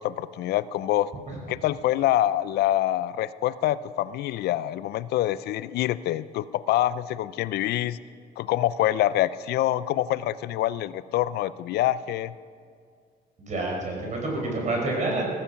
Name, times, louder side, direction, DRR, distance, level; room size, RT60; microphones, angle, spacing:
voice 1, 0.0-1.1 1.5-8.0 8.4-12.3, left 13 dB, 75° left, 17 dB, 0.5 m, -26 dB
voice 2, 13.4-15.3, right 2 dB, 45° right, 0 dB, 5.3 m, -28 dB
15.5 x 15.5 x 5.9 m, 2.1 s
cardioid pair, 110°, 17 cm